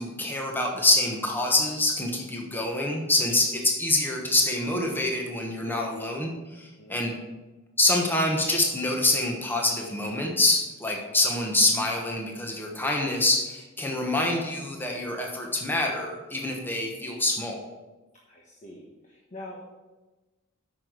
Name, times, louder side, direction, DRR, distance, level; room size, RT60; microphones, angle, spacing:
voice 1, 0.0-7.1 7.8-17.6, left 2 dB, 10° left, 0 dB, 1.2 m, -26 dB
voice 2, 6.8-7.2 18.3-19.6, left 1 dB, 35° left, -2 dB, 1.3 m, -44 dB
8.8 x 6.2 x 5.0 m, 1.1 s
head